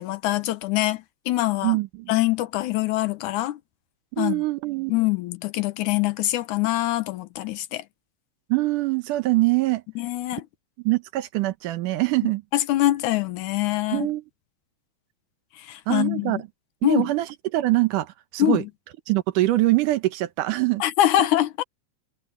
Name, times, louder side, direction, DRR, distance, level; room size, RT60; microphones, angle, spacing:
voice 1, 0.0-1.8 2.1-3.6 4.2-4.4 4.9-7.8 10.0-10.5 12.2-14.1 15.6-16.4 16.8-17.1 18.4-18.6 20.8-21.6, left 15 dB, 75° left, 2.3 m, -24 dB
voice 2, 1.6-2.1 4.1-4.9 8.5-9.8 10.8-12.4 13.9-14.2 15.9-16.4 16.8-18.6 19.1-20.8 21.2-21.3, right 18 dB, 85° right, 2.6 m, -23 dB
omnidirectional pair, 3.6 m